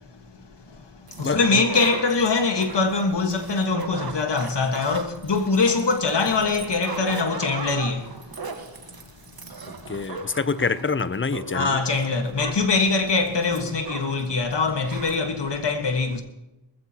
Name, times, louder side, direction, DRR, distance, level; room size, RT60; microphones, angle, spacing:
voice 1, 0.4-8.2 9.4-9.5 11.5-16.2, left 4 dB, 60° left, 1.6 m, -23 dB
sound 1, 1.1-14.3 14.5-14.6 14.8-15.2, right 4 dB, 50° right, 1.5 m, -37 dB
voice 2, 1.2-1.6 9.9-11.8, left 4 dB, 25° left, 0.6 m, -26 dB
20.0 x 15.0 x 2.9 m
wide cardioid pair, 70°, 46 cm